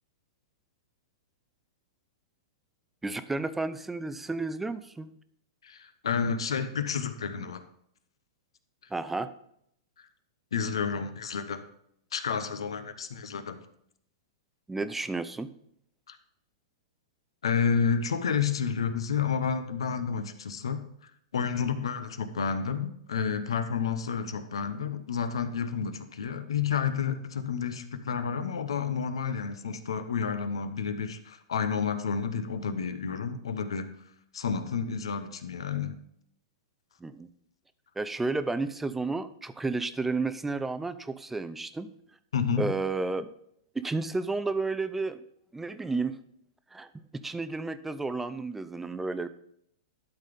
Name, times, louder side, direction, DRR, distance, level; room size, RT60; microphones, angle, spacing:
voice 1, 3.0-5.1 8.9-9.3 14.7-15.5 37.0-37.3 38.0-41.9 42.6-43.3 43.7-45.2 45.5-46.1 46.7-46.9 47.2-49.3, right 3 dB, 10° right, 12 dB, 0.5 m, -32 dB
voice 2, 5.6-7.6 10.0-10.1 10.5-11.6 12.1-13.6 16.1-16.2 17.4-20.8 21.3-33.9 34.3-35.9 42.3-42.7, left 6 dB, 85° left, 10 dB, 0.9 m, -30 dB
12.0 x 4.1 x 5.1 m, 0.71 s
hypercardioid pair, 125°, 3 cm